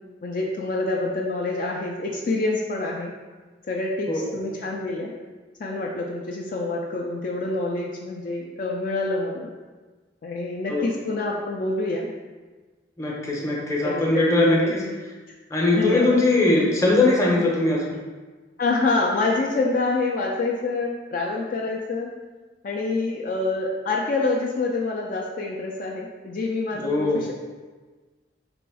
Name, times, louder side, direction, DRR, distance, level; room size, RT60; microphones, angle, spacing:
voice 1, 0.2-3.1 3.7-5.1 5.6-9.5 10.2-12.1 13.8-14.7 15.7-16.2 18.6-22.1 22.6-27.3, left 3 dB, 50° left, -1 dB, 0.4 m, -26 dB
voice 2, 13.0-14.8 15.5-17.9 26.7-27.2, left 2 dB, 15° left, -3 dB, 0.7 m, -21 dB
3.4 x 3.0 x 4.8 m, 1.3 s
head